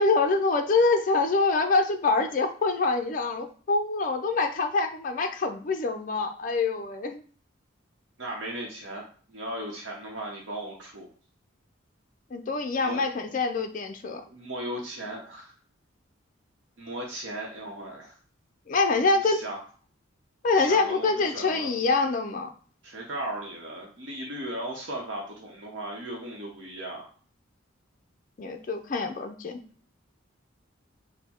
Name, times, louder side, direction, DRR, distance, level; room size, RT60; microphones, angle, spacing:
voice 1, 0.0-7.2 12.3-14.2 18.7-19.4 20.4-22.5 28.4-29.6, left 3 dB, 40° left, 5 dB, 0.4 m, -25 dB
voice 2, 8.2-9.0 9.3-11.1 12.8-13.0 14.3-15.5 16.8-18.2 19.2-19.6 20.5-21.7 22.8-27.1, right 1 dB, 65° right, -1 dB, 0.9 m, -37 dB
4.4 x 2.1 x 4.2 m, 0.43 s
head